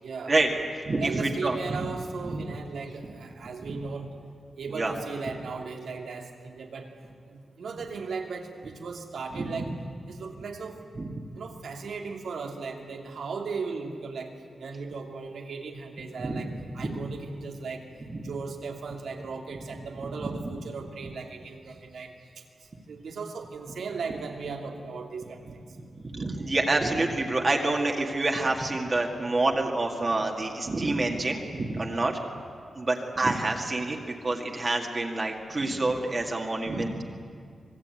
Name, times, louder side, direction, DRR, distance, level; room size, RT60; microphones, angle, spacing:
voice 1, 0.0-0.4 0.9-4.1 4.6-6.9 7.3-9.7 10.1-10.8 11.3-17.8 18.2-22.4 22.9-25.7 33.0-33.3, right 4 dB, 80° right, 2 dB, 2.9 m, -37 dB
voice 2, 0.8-1.8 2.2-2.4 4.7-4.9 9.3-9.7 11.0-11.1 16.2-16.4 16.8-16.9 18.1-18.2 26.1-32.2 32.8-37.0, right 2 dB, 30° right, 1 dB, 2.0 m, -27 dB
25.5 x 21.0 x 9.1 m, 2.2 s
wide cardioid pair, 175°, 0 cm